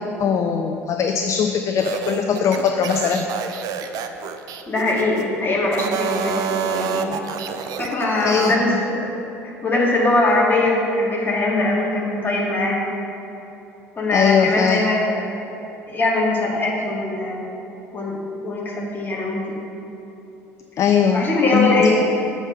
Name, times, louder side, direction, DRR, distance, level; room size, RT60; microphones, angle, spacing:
voice 1, 0.2-3.3 8.2-8.5 14.1-14.8 20.8-21.2 21.5-21.9, left 7 dB, 40° left, 5 dB, 0.5 m, -20 dB
sound 1, 1.8-5.3 5.7-8.6, right 8 dB, 50° right, 0.5 m, -28 dB
voice 2, 4.7-7.2 7.8-9.1 9.4-12.9 14.0-15.3 15.9-17.4 17.9-19.6 21.1-21.9, left 2 dB, 25° left, -3 dB, 2.0 m, -21 dB
7.2 x 5.1 x 6.5 m, 2.9 s
figure-of-eight pair, 60°, 8 cm